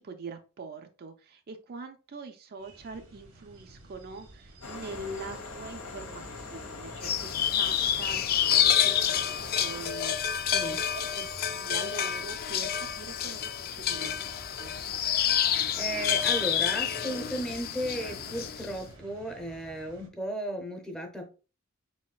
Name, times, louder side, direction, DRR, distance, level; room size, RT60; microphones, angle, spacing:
voice 1, 0.0-10.2 10.6-14.7, right 3 dB, 45° right, 6 dB, 0.4 m, -43 dB
sound 1, 2.6-20.1, right 1 dB, 75° right, 1.1 m, -50 dB
sound 2, 4.6-9.9, left 3 dB, 85° left, 1.1 m, -42 dB
sound 3, 7.0-18.7, left 9 dB, 45° left, 0.3 m, -28 dB
voice 2, 15.8-21.3, right 1 dB, 5° left, 4 dB, 0.7 m, -35 dB
4.2 x 4.0 x 2.2 m, 0.34 s
head